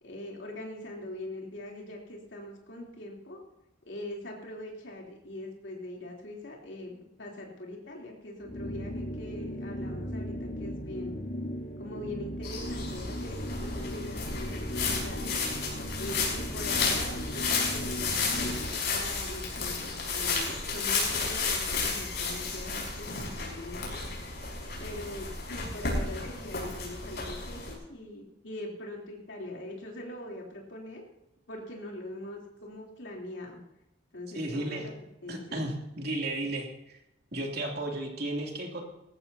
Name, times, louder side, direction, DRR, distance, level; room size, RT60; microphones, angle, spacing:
voice 1, 0.0-3.4 3.9-11.2 11.8-15.4 16.0-23.9 24.8-31.0 31.5-33.6 34.1-34.7 35.2-35.6, left 1 dB, 75° left, -2 dB, 3.3 m, -42 dB
sound 1, 8.4-18.8, equal, 40° left, 1.8 m, -37 dB
sound 2, 12.4-27.7, left 4 dB, 60° left, 5.7 m, -32 dB
voice 2, 34.3-34.9 35.3-36.7 37.3-38.8, right 1 dB, 55° right, 0 dB, 2.8 m, -33 dB
19.5 x 14.5 x 2.8 m, 0.89 s
head